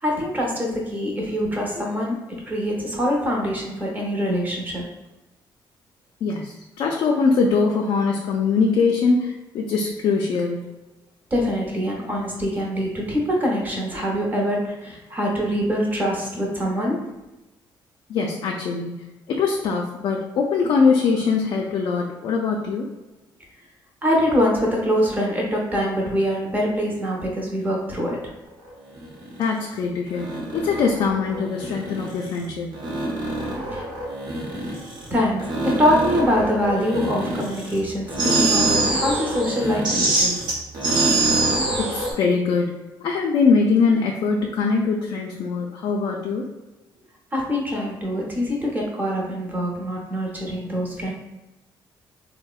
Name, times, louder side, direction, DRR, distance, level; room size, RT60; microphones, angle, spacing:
voice 1, 0.0-4.8 11.3-17.1 24.0-28.3 33.7-33.8 35.1-40.4 47.3-51.1, equal, 20° right, -1 dB, 0.7 m, -24 dB
voice 2, 6.2-10.6 18.1-22.9 29.4-32.8 41.8-42.7 43.0-46.5, left 4 dB, 60° left, 0 dB, 0.3 m, -22 dB
sound 1, 29.0-29.4 30.1-32.4 32.7-35.1 35.4-37.8 38.1-42.1, right 2 dB, 55° right, 0.7 m, -24 dB
3.6 x 2.0 x 2.3 m, 1.0 s
cardioid pair, 145°, 9 cm